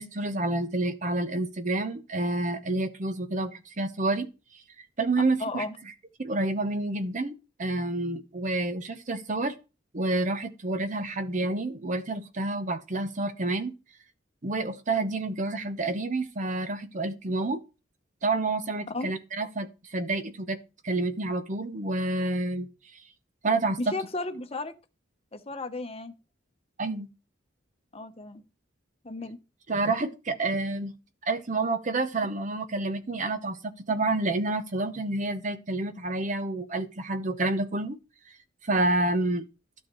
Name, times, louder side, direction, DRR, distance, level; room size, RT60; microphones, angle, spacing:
voice 1, 0.0-4.3 5.0-5.6 6.2-7.3 7.6-9.5 9.9-13.7 14.4-17.6 18.2-20.6 20.8-22.7 23.4-23.8 26.8-27.1 29.7-30.9 31.3-38.0 38.6-39.4, right 2 dB, 40° right, 0.8 m, -29 dB
voice 2, 5.4-5.8 18.9-19.1 23.9-24.7 25.3-26.1 27.9-28.4 29.0-29.4, left 2 dB, 30° left, 0.9 m, -34 dB
12.5 x 6.4 x 3.1 m
head